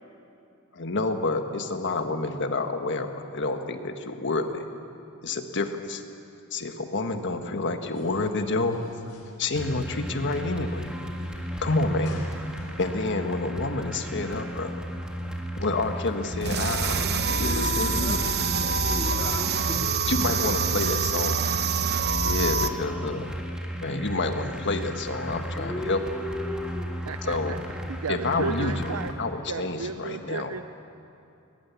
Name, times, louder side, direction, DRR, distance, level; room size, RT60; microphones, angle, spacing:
voice 1, 0.7-4.6 5.2-6.0 6.5-8.8 9.4-10.9 11.6-12.2 12.8-14.8 15.6-18.2 20.1-21.5 22.2-23.3 23.8-26.0 27.3-27.6 28.1-30.5, left 3 dB, 55° left, 6 dB, 1.5 m, -29 dB
sound 1, 7.8-12.9, left 1 dB, 75° left, 4.6 m, -50 dB
sound 2, 9.5-29.1, equal, 5° right, 1.8 m, -35 dB
sound 3, 16.4-22.7, right 5 dB, 50° right, 0.9 m, -26 dB
voice 2, 17.2-19.8 22.5-23.3 25.6-26.9, left 1 dB, 15° left, -1 dB, 2.8 m, -37 dB
voice 3, 27.1-29.1 29.5-30.6, right 5 dB, 75° right, 10 dB, 0.5 m, -34 dB
21.0 x 21.0 x 8.4 m, 2.7 s
head